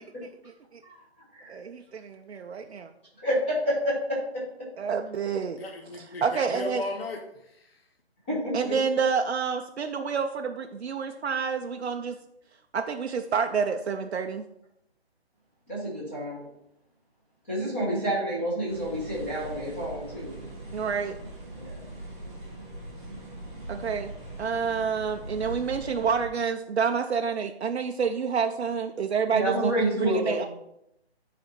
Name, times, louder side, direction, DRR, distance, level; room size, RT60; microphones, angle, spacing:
voice 1, 1.5-2.9 4.8-5.6 6.0-6.8 8.5-12.1 12.7-14.4 20.7-21.1 23.7-24.1 24.4-30.5, right 6 dB, 80° right, 4 dB, 0.6 m, -28 dB
voice 2, 3.2-4.5 8.3-8.7 15.7-16.4 17.5-20.3 21.5-21.8 29.3-30.4, equal, 10° left, -7 dB, 1.1 m, -28 dB
voice 3, 5.6-7.8, left 2 dB, 60° left, 2 dB, 1.1 m, -36 dB
sound 1, 18.7-26.3, right 2 dB, 5° right, 0.7 m, -41 dB
10.0 x 4.2 x 4.2 m, 0.82 s
hypercardioid pair, 180°, 33 cm